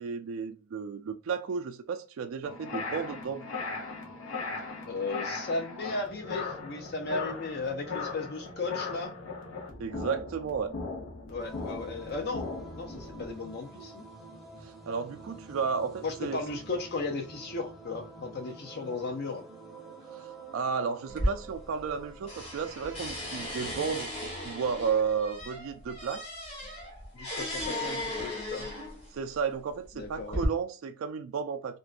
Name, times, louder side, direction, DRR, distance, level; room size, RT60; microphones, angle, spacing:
voice 1, 0.0-3.5 9.8-10.8 14.6-16.4 20.1-26.3 29.1-31.8, right 6 dB, 85° right, 0.3 m, -33 dB
sound 1, 2.4-13.3, left 4 dB, 90° left, 0.7 m, -38 dB
voice 2, 4.9-9.1 11.3-12.5 12.8-14.0 16.0-19.5 27.1-28.7 30.0-30.4, left 3 dB, 50° left, 0.5 m, -35 dB
sound 2, 11.4-24.0, right 3 dB, ahead, 0.6 m, -48 dB
sound 3, 21.1-22.0 22.3-29.1 29.8-30.5, left 1 dB, 30° left, 0.9 m, -36 dB
2.5 x 2.1 x 2.3 m
head